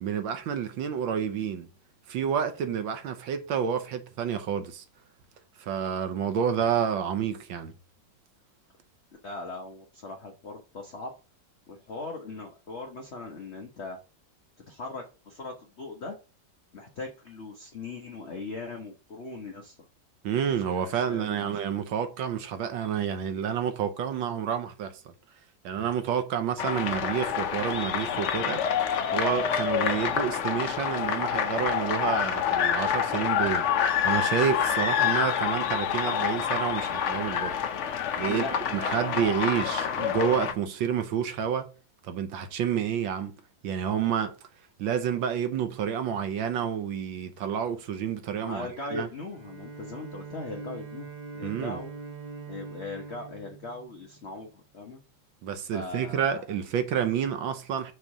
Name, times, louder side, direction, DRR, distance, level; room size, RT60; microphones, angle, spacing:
voice 1, 0.0-1.7 2.1-4.8 5.6-7.7 20.2-25.1 25.6-28.6 29.1-33.7 34.0-37.6 38.2-38.4 38.7-41.7 42.0-43.3 43.6-44.3 44.8-49.1 51.4-51.8 55.4-57.9, right 8 dB, 80° right, 1.6 m, -29 dB
voice 2, 9.2-11.1 11.7-14.0 14.7-16.2 16.7-19.8 20.6-21.5 38.3-38.6 38.8-39.7 48.4-51.1 51.3-51.9 52.5-55.0 55.7-56.4, left 3 dB, 45° left, 1.0 m, -39 dB
sound 1, 26.6-40.5, left 8 dB, 75° left, 0.6 m, -27 dB
Bowed string instrument, 49.3-54.5, right 5 dB, 60° right, 0.4 m, -43 dB
6.4 x 3.2 x 5.9 m
omnidirectional pair, 2.1 m